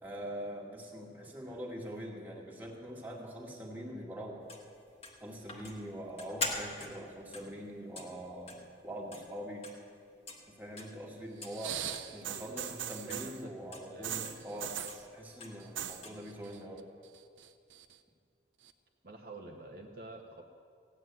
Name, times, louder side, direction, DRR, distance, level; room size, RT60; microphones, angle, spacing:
voice 1, 0.0-4.5 5.2-9.6 10.6-11.8 12.1-14.7 15.1-16.8, equal, 10° right, -3 dB, 2.0 m, -43 dB
voice 2, 1.2-1.6 12.2-12.8 13.0-14.7 19.0-20.4, right 2 dB, 50° right, 1 dB, 1.0 m, -49 dB
sound 1, 4.5-9.9 10.3-10.4 10.8-11.0 11.4-11.6 11.9-12.1 12.6-12.7 13.1-13.2 13.7-13.9 14.2-14.4 14.9-15.0 15.4-15.6 16.0-16.2, left 3 dB, 30° left, 1.5 m, -43 dB
sound 2, 11.4-13.4 14.0-15.0 15.6-16.0 16.3-16.8 17.1-17.9 18.7-18.8, right 10 dB, 90° right, 0.7 m, -40 dB
15.5 x 7.6 x 9.4 m, 2.3 s
head